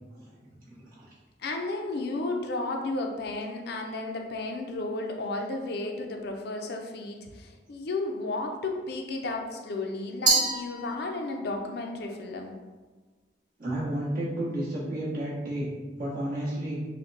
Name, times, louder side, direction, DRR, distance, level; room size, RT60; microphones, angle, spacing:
voice 1, 0.7-1.1 13.6-15.7 16.0-16.8, right 1 dB, 55° right, -8 dB, 1.4 m, -32 dB
voice 2, 1.4-12.5, left 2 dB, 60° left, 3 dB, 0.5 m, -33 dB
Glass, 10.3-11.5, right 3 dB, 25° right, 0.5 m, -27 dB
5.8 x 2.2 x 2.6 m, 1.3 s
head